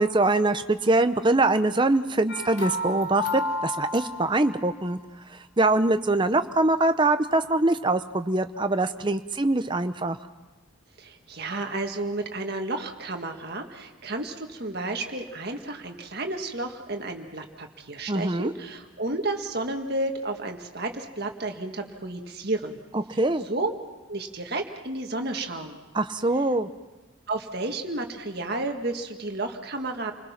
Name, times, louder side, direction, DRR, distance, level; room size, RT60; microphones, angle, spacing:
voice 1, 0.0-5.0 5.6-10.2 18.1-18.5 22.9-23.4 25.9-26.7, right 2 dB, 20° right, 9 dB, 0.7 m, -23 dB
sound 1, 2.3-4.8, left 2 dB, 60° left, 3.4 m, -32 dB
voice 2, 11.0-22.8 23.1-23.2 23.5-23.7 24.1-25.8 27.3-30.1, right 2 dB, 50° right, 4 dB, 1.8 m, -32 dB
30.0 x 20.5 x 5.9 m, 1.2 s
head